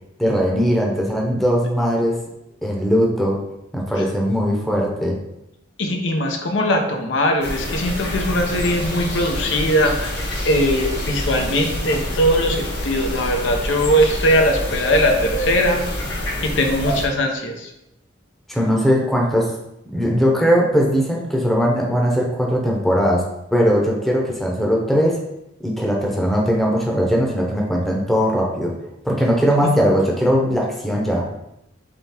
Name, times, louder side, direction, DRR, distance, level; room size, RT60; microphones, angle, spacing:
voice 1, 0.2-2.2 2.6-3.4 3.7-5.2 18.5-19.5 19.9-23.2 23.5-25.2 25.6-28.7 29.0-31.3, equal, ahead, -2 dB, 0.7 m, -19 dB
voice 2, 5.8-10.1 10.4-15.8 16.4-17.7 29.6-29.7, equal, 85° left, 3 dB, 0.7 m, -20 dB
sound 1, 7.4-17.1, left 1 dB, 60° left, 1.1 m, -26 dB
3.8 x 3.4 x 4.2 m, 0.87 s
head